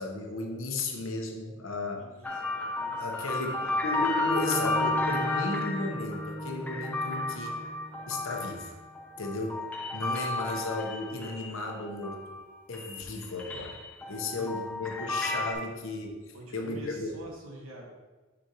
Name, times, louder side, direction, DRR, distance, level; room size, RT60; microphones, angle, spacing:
voice 1, 0.0-2.1 3.0-3.6 3.8-7.6 8.1-8.8 9.2-12.2 12.7-13.8 14.1-17.1, left 2 dB, 65° left, 2 dB, 0.9 m, -34 dB
voice 2, 1.9-3.7 14.0-14.7 16.3-17.9, equal, 75° right, -2 dB, 1.5 m, -47 dB
sound 1, 2.2-12.5 12.7-15.5, left 2 dB, 5° left, 0.5 m, -33 dB
sound 2, 4.2-8.5, equal, 40° left, 0.9 m, -37 dB
6.2 x 5.1 x 2.9 m, 1.2 s
head